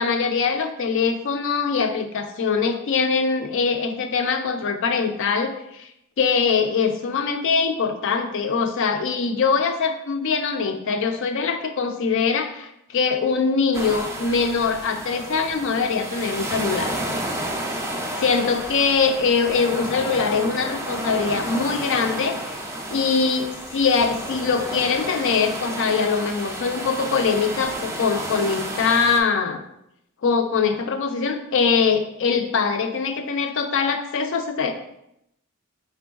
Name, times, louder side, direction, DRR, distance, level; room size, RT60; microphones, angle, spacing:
voice 1, 0.0-5.9 6.2-16.9 18.2-22.6 22.9-29.6 30.2-34.7, left 5 dB, 60° left, 6 dB, 0.4 m, -22 dB
sound 1, 13.7-29.2, right 1 dB, 15° right, 0.3 m, -31 dB
4.5 x 3.3 x 2.3 m, 0.80 s
head